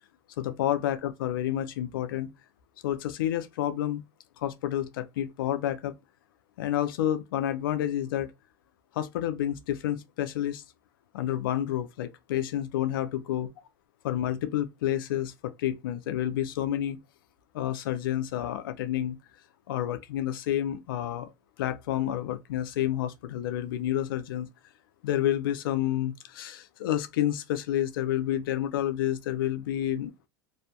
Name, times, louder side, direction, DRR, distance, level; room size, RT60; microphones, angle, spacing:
voice 1, 0.4-2.3 2.8-4.0 4.4-5.9 6.6-8.3 8.9-10.6 11.1-13.5 14.0-17.0 17.5-19.2 19.7-21.3 21.6-24.5 25.0-30.1, left 12 dB, 85° left, 0.4 m, -29 dB
2.6 x 2.1 x 2.7 m
supercardioid pair, 120°, 11 cm